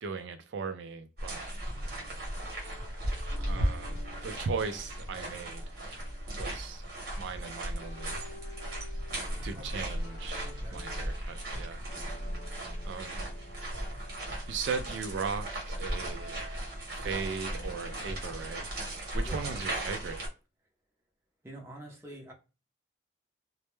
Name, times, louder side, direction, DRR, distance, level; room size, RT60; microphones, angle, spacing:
voice 1, 0.0-1.4 3.4-5.6 6.4-6.8 7.2-8.2 9.4-11.9 12.8-13.2 14.5-16.4 16.9-18.7 19.1-20.2, right 5 dB, 70° right, 0.3 m, -37 dB
sound 1, 1.2-20.3, right 1 dB, 50° right, 0.9 m, -36 dB
sound 2, 1.7-18.2, left 1 dB, 55° left, 0.5 m, -52 dB
voice 2, 10.4-10.9 19.3-19.5 21.4-22.3, right 1 dB, 15° right, 0.5 m, -46 dB
2.1 x 2.0 x 3.0 m
head